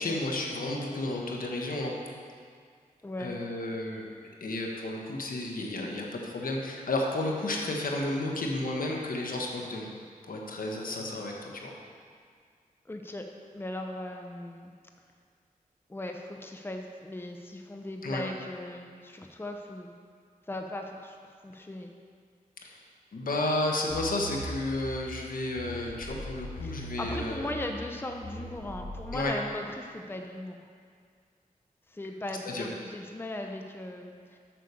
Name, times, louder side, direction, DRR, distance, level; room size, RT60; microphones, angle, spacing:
voice 1, 0.0-1.9 3.2-9.9 10.3-11.7 18.0-18.2 22.6-22.8 23.1-27.5 29.1-29.3 32.4-32.7, left 2 dB, 70° left, 0 dB, 1.4 m, -32 dB
voice 2, 3.0-3.3 12.8-13.3 13.5-14.7 15.9-19.9 20.5-21.9 26.6-30.6 31.9-34.4, left 1 dB, 15° left, 3 dB, 0.7 m, -38 dB
sound 1, 23.9-29.2, equal, 30° left, 2.5 m, -41 dB
7.6 x 6.5 x 6.9 m, 2.1 s
wide cardioid pair, 75°, 15 cm